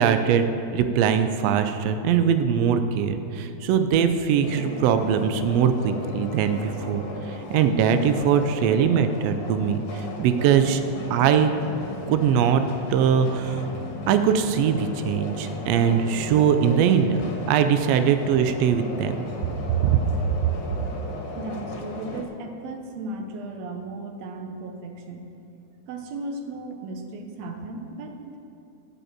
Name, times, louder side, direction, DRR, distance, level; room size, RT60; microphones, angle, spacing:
voice 1, 0.0-10.8 11.1-11.5 12.1-12.6 12.9-13.7 14.1-17.2 17.5-19.2 19.8-20.0 20.4-20.5, right 8 dB, 85° right, 8 dB, 1.4 m, -21 dB
sound 1, 4.4-22.3, left 3 dB, 80° left, 2.6 m, -36 dB
voice 2, 21.4-25.3 25.9-28.4, right 2 dB, 70° right, 4 dB, 1.9 m, -36 dB
11.0 x 5.5 x 7.4 m, 2.8 s
omnidirectional pair, 3.5 m